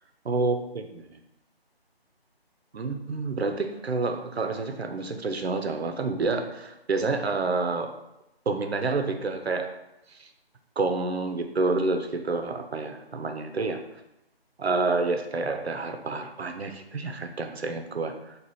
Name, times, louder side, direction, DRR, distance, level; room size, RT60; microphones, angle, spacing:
voice 1, 0.2-1.2 2.7-8.0 8.5-9.8 10.1-10.3 10.8-13.9 14.6-18.4, right 3 dB, 80° right, 6 dB, 0.7 m, -28 dB
4.1 x 2.4 x 4.7 m, 0.89 s
figure-of-eight pair, 180°, 31 cm